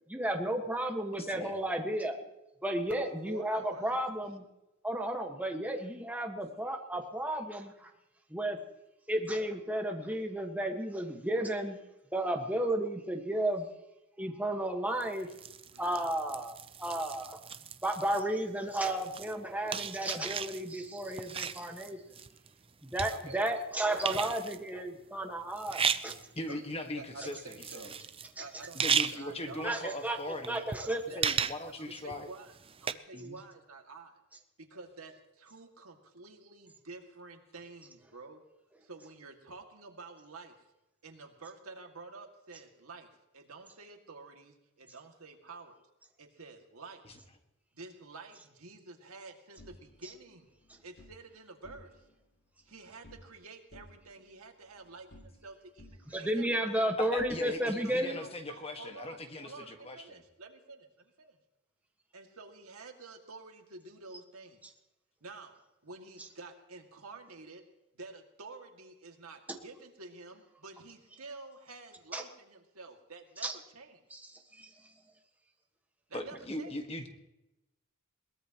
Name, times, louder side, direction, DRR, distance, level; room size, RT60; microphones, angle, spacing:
voice 1, 0.1-2.2 2.6-4.4 4.8-7.9 8.3-8.6 9.1-11.8 12.1-13.7 14.2-15.3 15.8-17.4 17.8-22.0 22.8-26.1 28.4-28.5 29.6-30.2 30.5-31.0 56.1-58.2 72.1-72.2 73.4-73.5 74.1-74.2 74.6-74.7, right 1 dB, 5° right, 2 dB, 1.6 m, -33 dB
voice 2, 1.2-1.6 26.3-27.9 28.7-30.6 31.1-32.3 33.1-33.4 47.0-47.1 57.0-60.2 76.1-77.1, left 1 dB, 30° left, 5 dB, 1.7 m, -40 dB
voice 3, 2.9-3.9 15.7-16.1 23.1-23.4 26.5-26.6 26.9-27.9 28.4-29.8 30.8-31.5 31.8-34.2 34.6-38.4 38.8-40.5 41.0-45.8 46.2-47.2 47.7-50.5 50.8-52.0 52.7-56.8 57.8-61.4 62.1-64.6 65.2-67.6 67.9-74.0 76.1-76.7, right 3 dB, 80° right, 3 dB, 2.3 m, -49 dB
sound 1, 15.0-18.2 18.7-23.6 23.9-24.7 25.5-26.4 26.8-26.9 27.3-28.3 28.6-29.2 29.5-29.6 30.3-32.9, right 7 dB, 25° right, 0.6 m, -35 dB
sound 2, 49.6-51.2 51.5-52.2 52.5-53.4 53.7-55.5 55.8-57.9, left 1 dB, 55° left, 2.9 m, -57 dB
22.0 x 18.5 x 3.1 m, 0.93 s
head